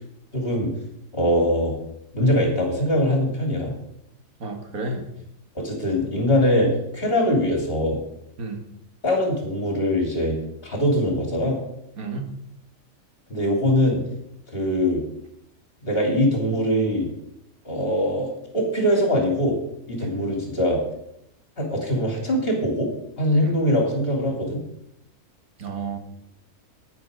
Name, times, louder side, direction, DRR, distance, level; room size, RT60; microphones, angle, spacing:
voice 1, 0.3-0.7 1.1-1.7 2.1-3.7 5.5-8.0 9.0-11.6 13.3-14.0 14.5-15.0 15.8-17.1 17.6-19.6 19.9-20.8 21.6-22.9 23.2-24.6, equal, 40° left, 0 dB, 3.1 m, -22 dB
voice 2, 4.4-5.1 8.4-8.6 12.0-12.3 20.0-20.3 23.4-23.5 25.6-26.0, right 3 dB, 80° right, 4 dB, 2.0 m, -31 dB
9.8 x 9.5 x 5.1 m, 0.80 s
omnidirectional pair, 1.5 m